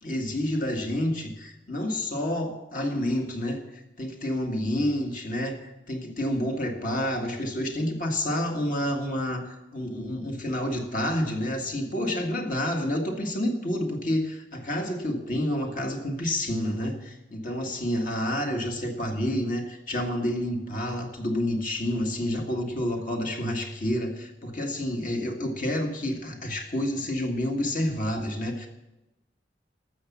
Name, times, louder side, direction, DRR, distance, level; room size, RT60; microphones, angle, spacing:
voice 1, 0.0-28.7, left 1 dB, 50° left, 2 dB, 1.8 m, -29 dB
13.5 x 7.1 x 7.2 m, 0.99 s
head